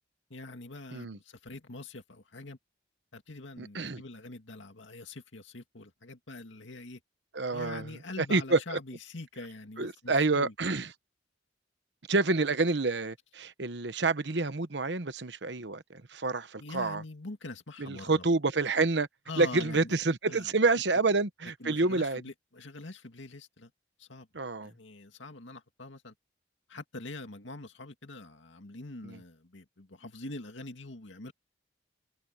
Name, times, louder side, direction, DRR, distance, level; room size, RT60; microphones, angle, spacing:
voice 1, 0.3-2.6 3.1-7.0 7.5-10.5 16.6-18.2 19.3-20.0 20.2-20.5 21.6-23.7 24.0-24.3 24.6-26.1 26.7-31.3, left 2 dB, 90° left, 2.2 m, -44 dB
voice 2, 3.6-4.0 7.3-7.9 8.2-8.8 9.8-10.9 12.1-17.0 17.8-19.1 19.4-22.2 24.3-24.7 29.0-29.2, right 3 dB, 65° right, 1.1 m, -28 dB
head